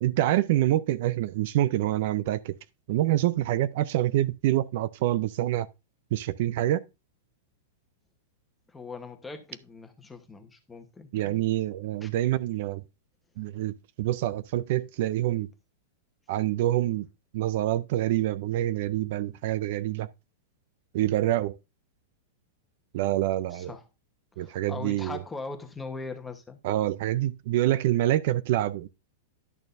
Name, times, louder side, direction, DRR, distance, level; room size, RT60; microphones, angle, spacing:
voice 1, 0.0-2.5 2.9-5.7 6.1-6.8 11.1-12.8 13.4-15.5 16.3-17.1 17.3-20.1 20.9-21.5 22.9-23.7 24.4-25.2 26.6-28.9, right 14 dB, 55° right, 0.4 m, -26 dB
voice 2, 8.7-11.4 12.0-12.1 23.5-23.8 24.4-26.6, left 3 dB, 10° left, 1.1 m, -40 dB
11.0 x 6.5 x 2.6 m
supercardioid pair, 150°, 0 cm